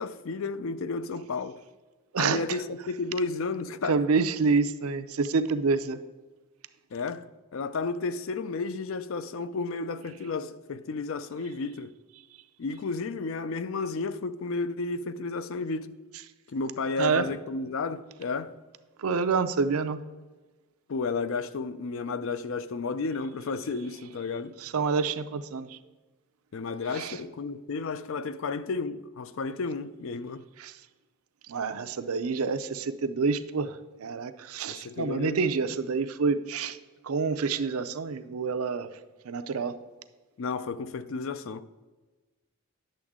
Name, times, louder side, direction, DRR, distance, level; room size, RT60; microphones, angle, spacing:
voice 1, 0.0-1.6 2.2-4.0 6.9-11.9 12.6-16.0 16.5-18.5 20.9-24.6 26.5-30.5 34.7-35.4 40.4-41.7, left 4 dB, 65° left, 0.4 m, -32 dB
voice 2, 2.1-2.6 3.9-6.0 17.0-17.2 19.0-20.0 24.6-25.8 26.9-27.2 30.6-30.8 31.5-36.8 37.0-38.9 39.2-39.7, right 4 dB, 80° right, 0.5 m, -27 dB
10.0 x 7.0 x 3.6 m
head